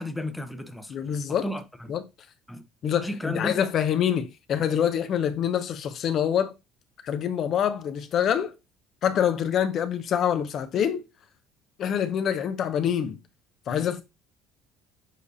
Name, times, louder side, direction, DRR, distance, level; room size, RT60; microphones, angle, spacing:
voice 1, 0.0-1.0 1.3-2.0 2.5-2.6 3.0-3.6, left 1 dB, 5° left, 0.6 m, -33 dB
voice 2, 0.9-1.5 1.9-2.0 2.8-6.5 7.0-8.5 9.0-11.0 11.8-13.2 13.7-14.0, left 9 dB, 50° left, 0.5 m, -25 dB
6.6 x 2.6 x 2.6 m
cardioid pair, 110°, 0 cm